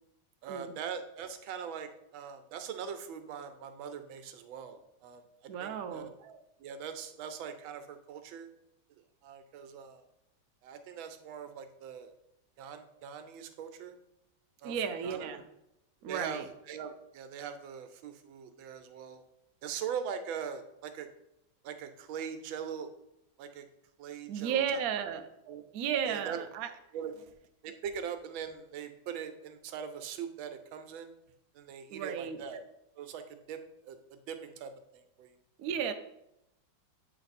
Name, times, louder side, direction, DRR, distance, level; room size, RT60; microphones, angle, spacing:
voice 1, 0.4-8.5 9.2-10.0 10.6-12.1 12.6-14.0 14.6-14.8 15.0-15.5 16.1-19.2 19.6-21.1 21.6-22.9 23.4-23.7 24.0-24.6 25.5-25.6 26.1-26.5 26.9-27.1 27.6-31.1 31.5-32.6 33.0-35.3, right 7 dB, 85° right, 8 dB, 1.4 m, -41 dB
voice 2, 5.5-6.1 14.6-15.4 16.0-16.5 24.3-25.2 25.7-26.7 31.9-32.4 35.6-35.9, right 8 dB, 70° right, 7 dB, 0.8 m, -33 dB
7.9 x 3.3 x 4.1 m, 0.83 s
omnidirectional pair, 2.1 m